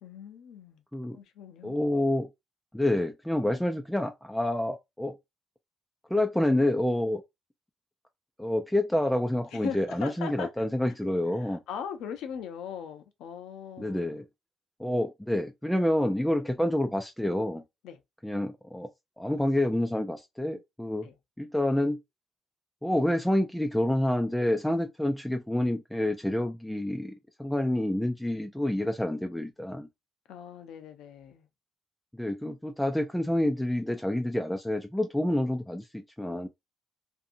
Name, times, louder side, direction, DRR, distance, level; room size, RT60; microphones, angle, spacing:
voice 1, 0.0-0.8 1.1-1.8 9.5-10.5 10.8-10.9 11.4-14.2 16.5-16.6 17.8-18.0 21.0-21.2 30.3-31.5, left 7 dB, 85° left, 0.5 m, -40 dB
voice 2, 1.6-2.3 2.7-5.2 6.1-7.2 8.4-11.6 13.8-14.2 14.8-17.6 18.2-18.9 19.2-21.1 21.4-22.0 22.8-29.9 32.1-36.5, left 1 dB, 5° left, 0.3 m, -28 dB
2.6 x 2.6 x 2.5 m
cardioid pair, 90°, 0 cm